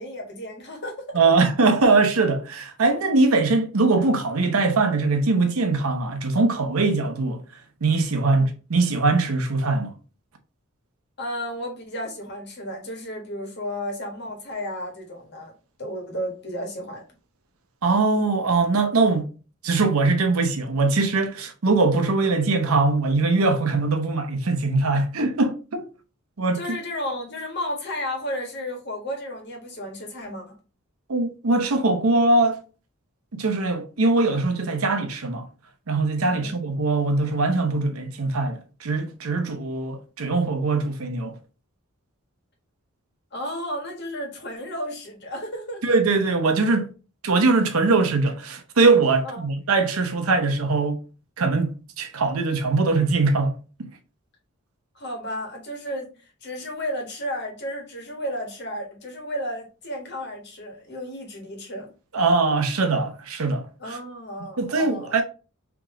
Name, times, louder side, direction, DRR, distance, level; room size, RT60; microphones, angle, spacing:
voice 1, 0.0-1.2 8.2-8.5 11.2-15.5 15.8-17.0 26.5-30.6 36.2-36.6 43.3-45.8 49.2-49.5 54.9-61.9 63.8-65.2, equal, 50° left, 1.3 m, -33 dB
voice 2, 1.1-7.4 7.8-9.9 17.8-19.3 19.6-25.8 26.4-26.6 31.1-32.6 33.3-35.5 35.9-41.4 45.8-46.9 47.2-51.0 51.4-53.9 62.1-64.0 64.6-65.2, right 3 dB, 85° right, 0.8 m, -22 dB
3.5 x 2.9 x 3.6 m
head